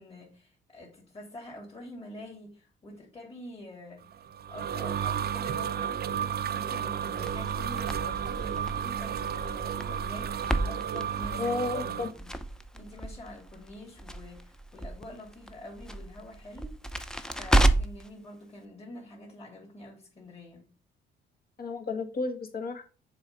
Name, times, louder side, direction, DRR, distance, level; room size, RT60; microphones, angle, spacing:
voice 1, 0.0-4.0 4.5-12.3 12.7-16.8 17.3-20.7, left 1 dB, 30° left, 2.8 m, -46 dB
sound 1, 4.1-12.1, right 8 dB, 55° right, 0.5 m, -32 dB
Crackle, 7.2-18.1, right 1 dB, 5° left, 0.6 m, -32 dB
voice 2, 11.3-12.1 21.6-22.8, left 3 dB, 50° left, 1.5 m, -32 dB
6.9 x 3.4 x 5.4 m
cardioid pair, 90°, 20 cm